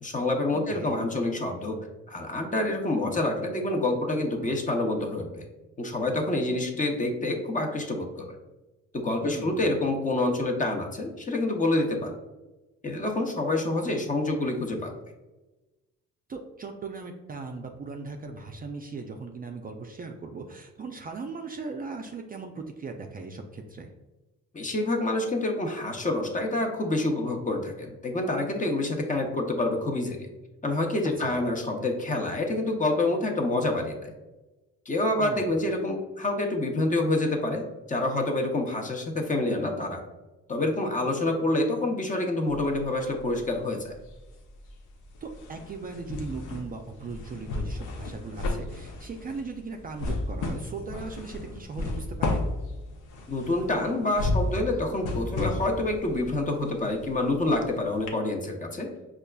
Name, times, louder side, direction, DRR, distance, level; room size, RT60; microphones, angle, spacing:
voice 1, 0.0-1.8 2.1-5.4 5.8-8.4 8.9-12.1 12.8-14.9 24.5-30.3 30.6-34.1 34.9-40.0 40.5-43.9 53.3-58.9, left 2 dB, 25° left, 2 dB, 0.7 m, -27 dB
voice 2, 0.5-1.0 9.2-9.7 16.3-23.9 31.0-31.4 35.2-35.5 45.2-52.4, right 4 dB, 30° right, 3 dB, 0.4 m, -38 dB
sound 1, 42.5-43.6 43.9-57.7 58.1-58.2, left 2 dB, 85° left, 0.7 m, -33 dB
5.2 x 2.4 x 2.2 m, 1.1 s
cardioid pair, 90°, 30 cm